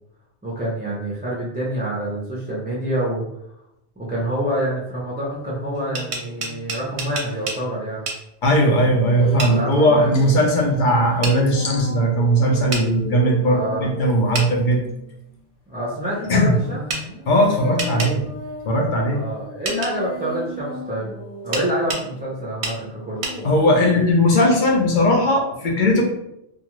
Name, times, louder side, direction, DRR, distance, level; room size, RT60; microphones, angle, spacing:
voice 1, 0.4-3.2 4.0-8.1 9.2-9.9 13.4-13.9 15.7-16.8 19.1-21.1 21.4-23.2, right 1 dB, 10° right, -7 dB, 0.5 m, -27 dB
sound 1, 5.3-7.4 8.6-15.3 16.1-22.5 23.2-24.1, equal, 75° left, 1.0 m, -36 dB
sound 2, 5.7-7.6 8.1-8.2 9.4-9.5 11.2-11.4 12.7-12.9 14.3-14.5 16.9-17.0 17.8-18.1 19.6-19.9 21.5-22.0 22.6-22.8 23.2-23.4, right 3 dB, 55° right, 0.7 m, -27 dB
voice 2, 8.4-14.8 16.3-16.6 17.3-18.3 18.7-19.2 23.4-26.0, equal, 55° left, 0 dB, 0.7 m, -18 dB
2.5 x 2.4 x 2.9 m, 0.80 s
omnidirectional pair, 1.1 m